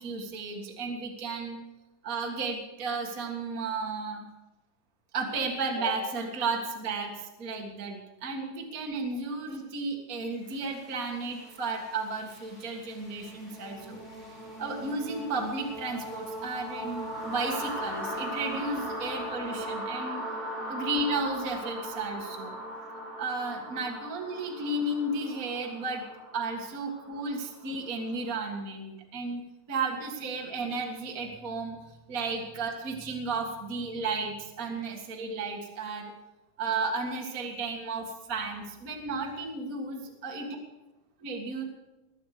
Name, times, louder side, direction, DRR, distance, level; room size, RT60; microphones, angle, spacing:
voice 1, 0.0-1.6 2.0-4.3 5.1-14.0 14.6-20.2 20.7-22.5 23.2-26.0 26.3-29.4 29.7-31.8 32.1-36.1 36.6-40.5 41.2-41.6, right 3 dB, 35° right, 1 dB, 1.4 m, -33 dB
sound 1, 10.5-28.3, equal, 15° left, 7.9 m, -39 dB
21.0 x 9.0 x 6.7 m, 1.1 s
omnidirectional pair, 4.5 m